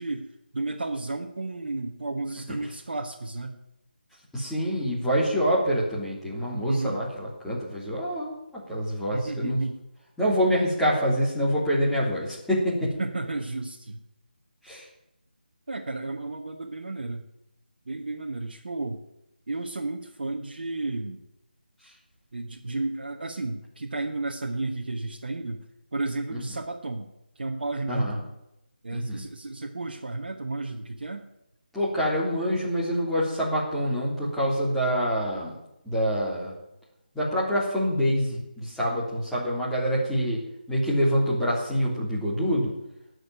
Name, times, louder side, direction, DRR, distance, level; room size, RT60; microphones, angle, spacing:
voice 1, 0.0-3.6 6.6-7.0 9.1-9.8 13.0-14.0 15.7-17.3 17.9-19.0 19.5-21.2 22.3-25.6 25.9-28.3 28.8-31.3, right 2 dB, 60° right, 1 dB, 1.4 m, -33 dB
voice 2, 4.3-9.6 10.2-12.9 14.6-14.9 21.8-21.9 26.3-26.4 27.9-28.2 28.9-29.2 31.7-35.6 35.8-36.6 37.1-40.4 40.7-42.7, equal, ahead, -8 dB, 3.4 m, -26 dB
18.5 x 6.6 x 9.1 m, 0.88 s
figure-of-eight pair, 160°, 6 cm